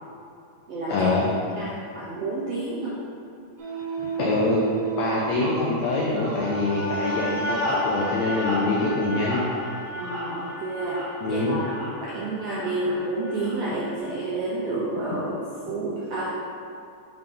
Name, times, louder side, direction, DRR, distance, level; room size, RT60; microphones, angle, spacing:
voice 1, 0.9-1.2 4.2-4.6 5.0-9.5 11.2-11.6, left 2 dB, 85° left, -3 dB, 1.5 m, -24 dB
voice 2, 1.5-2.9 9.9-11.0 11.3-15.4 15.7-16.4, right 2 dB, 75° right, -8 dB, 1.4 m, -30 dB
sound 1, 3.6-14.0, right 1 dB, 60° right, 2.0 m, -32 dB
5.9 x 4.8 x 3.8 m, 2.5 s
omnidirectional pair, 3.9 m